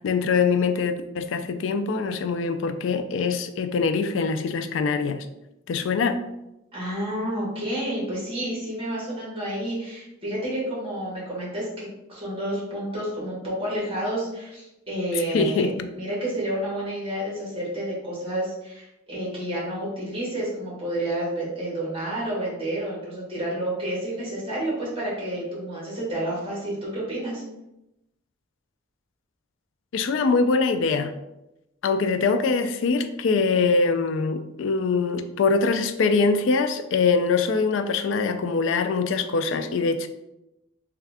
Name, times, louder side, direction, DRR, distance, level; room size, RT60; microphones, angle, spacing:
voice 1, 0.0-5.3 5.7-6.2 15.3-15.9 29.9-31.1 31.8-40.1, left 4 dB, 65° left, 8 dB, 0.3 m, -23 dB
voice 2, 6.7-27.4, right 1 dB, 30° right, -6 dB, 1.5 m, -30 dB
3.5 x 2.3 x 3.3 m, 0.90 s
head